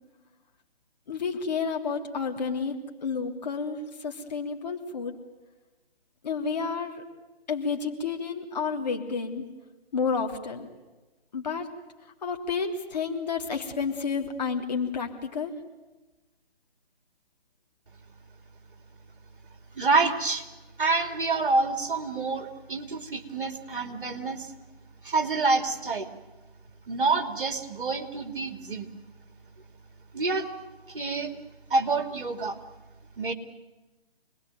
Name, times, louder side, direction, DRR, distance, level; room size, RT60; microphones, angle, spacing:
voice 1, 1.1-5.1 6.2-7.0 7.5-9.5 9.9-10.7 11.3-11.7 12.2-15.5, left 5 dB, 40° left, 2 dB, 3.2 m, -30 dB
voice 2, 19.7-20.5 20.8-24.5 25.0-26.1 26.9-28.9 30.1-30.5 30.9-31.4 31.7-32.6 33.2-33.3, right 3 dB, 55° right, 6 dB, 2.8 m, -27 dB
26.5 x 20.5 x 9.3 m, 1.2 s
figure-of-eight pair, 150°, 31 cm